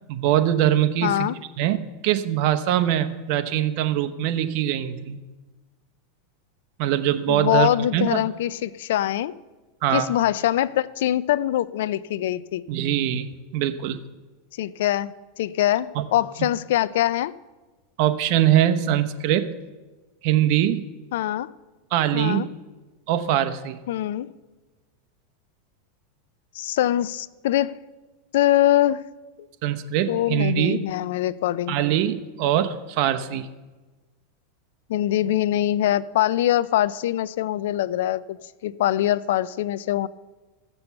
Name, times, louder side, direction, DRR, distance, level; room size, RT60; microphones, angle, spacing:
voice 1, 0.1-1.3 1.6-1.8 2.0-5.2 6.8-8.2 9.8-10.1 12.7-14.0 15.9-16.0 18.0-19.5 20.2-20.9 21.9-22.4 23.1-23.8 29.6-30.8 31.7-33.5, right 11 dB, 55° right, 0.9 m, -22 dB
voice 2, 1.0-1.4 7.3-9.3 9.9-12.6 14.6-17.3 21.1-21.5 22.1-22.5 23.9-24.3 26.5-27.7 28.3-29.0 30.1-31.8 34.9-38.4 38.6-40.1, left 13 dB, 75° left, 0.4 m, -23 dB
14.5 x 6.9 x 6.9 m
supercardioid pair, 135°, 0 cm